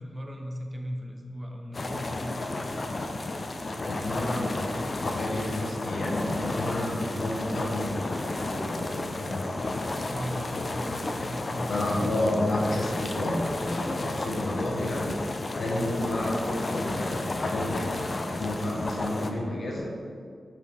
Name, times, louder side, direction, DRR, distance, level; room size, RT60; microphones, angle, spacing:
voice 1, 0.0-2.6 7.0-7.1 10.1-12.2 15.7-15.9, equal, 20° right, 2 dB, 0.6 m, -37 dB
sound 1, 1.7-19.3, left 2 dB, 40° left, 0.4 m, -32 dB
voice 2, 3.8-9.5 11.7-15.2 15.6-20.0, left 1 dB, 65° left, -3 dB, 1.2 m, -31 dB
6.0 x 4.8 x 3.5 m, 2.2 s
wide cardioid pair, 95°, 0 cm